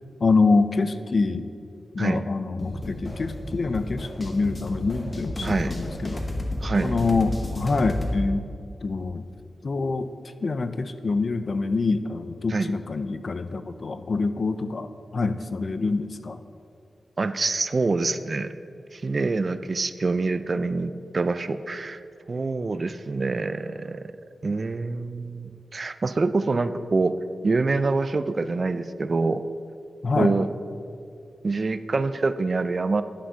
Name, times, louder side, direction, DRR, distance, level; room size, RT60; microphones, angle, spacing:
voice 1, 0.2-1.5 1.9-6.2 6.8-8.5 8.8-9.3 9.6-10.1 10.4-16.4 30.0-30.3, left 3 dB, 45° left, 11 dB, 0.4 m, -25 dB
sound 1, 2.6-8.2, left 1 dB, 25° left, 1.1 m, -32 dB
voice 2, 5.4-5.7 6.6-7.0 12.5-12.7 17.2-18.5 18.9-22.0 22.3-24.1 24.4-27.2 27.4-29.4 30.1-30.5 31.4-33.0, right 3 dB, 40° right, 12 dB, 0.3 m, -25 dB
9.9 x 5.8 x 5.6 m, 2.5 s
wide cardioid pair, 140°, 0 cm